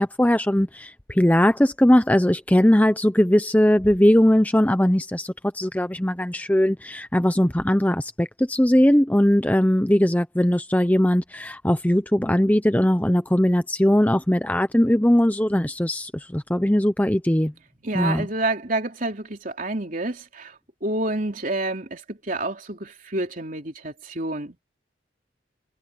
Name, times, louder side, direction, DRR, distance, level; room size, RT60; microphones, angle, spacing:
voice 1, 0.0-17.5 17.9-18.3, equal, 10° left, 0.6 m, -20 dB
voice 2, 17.8-20.5 20.8-24.6, right 2 dB, 45° right, 3.6 m, -28 dB
head